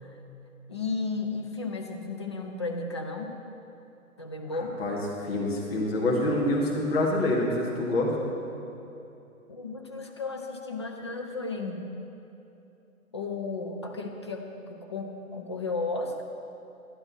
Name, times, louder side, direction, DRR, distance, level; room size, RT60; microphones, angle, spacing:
voice 1, 0.7-3.3 4.2-4.8 9.5-11.9 13.1-16.2, left 3 dB, 20° left, 3 dB, 0.4 m, -34 dB
voice 2, 5.2-8.1, left 1 dB, 45° left, -3 dB, 2.6 m, -26 dB
12.0 x 12.0 x 4.3 m, 2.9 s
hypercardioid pair, 150°, 43 cm